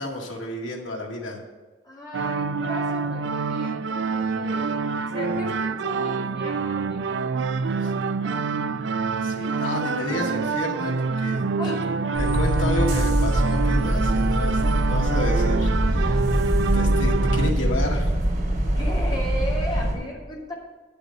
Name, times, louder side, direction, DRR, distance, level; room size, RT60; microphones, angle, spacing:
voice 1, 0.0-1.4 7.8-7.9 9.2-11.7 12.2-16.3 16.5-18.1, left 1 dB, 90° left, 0 dB, 2.1 m, -31 dB
voice 2, 1.8-8.4 11.6-11.9 14.4-14.8 18.8-20.5, equal, 20° left, -4 dB, 2.4 m, -36 dB
sound 1, 2.1-17.5, right 4 dB, 70° right, 0.4 m, -26 dB
sound 2, 12.1-19.9, right 1 dB, 50° right, 3.3 m, -23 dB
10.0 x 6.9 x 6.5 m, 1.3 s
head